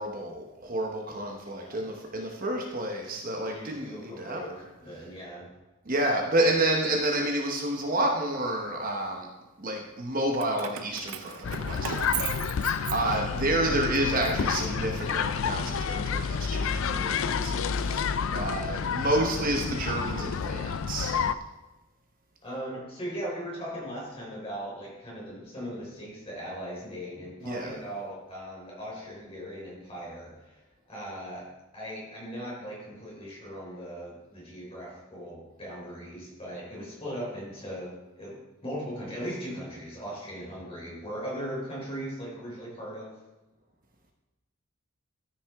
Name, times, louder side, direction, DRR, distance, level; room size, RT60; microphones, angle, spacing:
voice 1, 0.0-4.6 5.9-9.3 9.6-21.1 27.4-27.7, right 1 dB, 40° right, 1 dB, 1.0 m, -30 dB
voice 2, 1.5-1.9 3.4-5.5 22.4-31.4 31.7-43.1, equal, 25° left, -5 dB, 3.6 m, -39 dB
Keys jangling, 10.3-13.5 13.9-15.2, right 9 dB, 85° right, 0.6 m, -37 dB
sound 1, 11.4-21.3, left 6 dB, 65° left, 0.4 m, -30 dB
13.0 x 6.1 x 3.5 m, 1.1 s
head